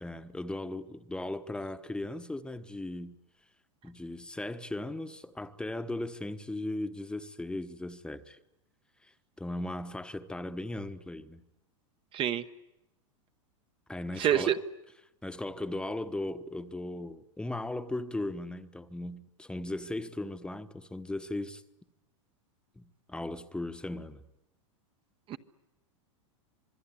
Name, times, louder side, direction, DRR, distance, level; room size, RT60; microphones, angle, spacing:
voice 1, 0.0-3.2 3.8-8.4 9.0-9.1 9.4-11.4 13.9-14.6 15.2-21.6 22.8-24.2, left 2 dB, 5° left, 1.1 m, -37 dB
voice 2, 14.2-14.6 25.3-25.4, right 11 dB, 30° right, 1.0 m, -26 dB
26.5 x 21.0 x 10.0 m
hypercardioid pair, 130°, 17 cm